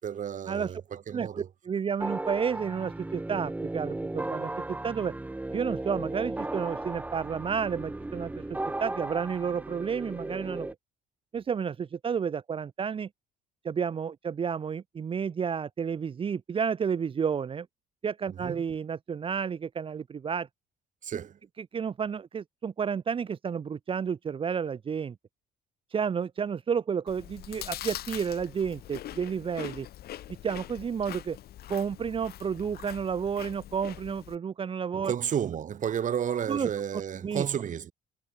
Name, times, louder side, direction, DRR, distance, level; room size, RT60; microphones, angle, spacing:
voice 1, 0.0-1.5 18.3-18.6 21.0-21.4 35.0-37.9, right 8 dB, 50° right, 6.2 m, -32 dB
voice 2, 1.1-4.5 4.8-5.1 5.5-10.7 11.3-13.1 13.6-17.7 18.0-20.5 21.6-25.1 25.9-29.9 30.4-31.4 31.7-35.1 36.5-36.7 37.2-37.5, right 6 dB, 30° right, 0.8 m, -31 dB
sound 1, 2.0-10.7, right 2 dB, 10° right, 1.2 m, -36 dB
Chewing mastication, 27.1-34.4, left 13 dB, 65° left, 7.1 m, -43 dB
cardioid pair, 110°, 17 cm